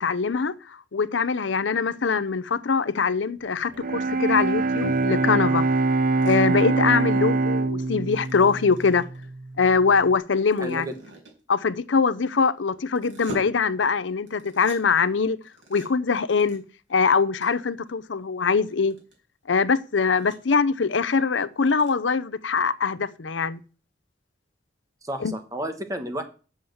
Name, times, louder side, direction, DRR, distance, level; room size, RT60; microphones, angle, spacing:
voice 1, 0.0-5.6 6.2-9.1 9.6-10.9 11.5-15.4 15.7-16.6 16.9-18.9 19.5-23.6 25.2-25.3, left 5 dB, 80° left, 0.7 m, -23 dB
Bowed string instrument, 3.7-9.8, right 3 dB, 45° right, 0.6 m, -24 dB
sound 1, 6.2-6.4 8.0-9.3 10.3-11.4 12.9-13.4 14.3-14.8 15.4-15.9 16.3-16.6 16.9-17.0 17.4-17.5 17.9-18.0 18.5-19.1 19.6-19.7 20.0-20.5 20.9-21.0 21.2-21.3 21.5-21.9, right 2 dB, 85° right, 4.6 m, -42 dB
voice 2, 10.6-11.0 25.0-26.2, right 1 dB, 20° right, 1.1 m, -31 dB
7.3 x 7.2 x 7.8 m
head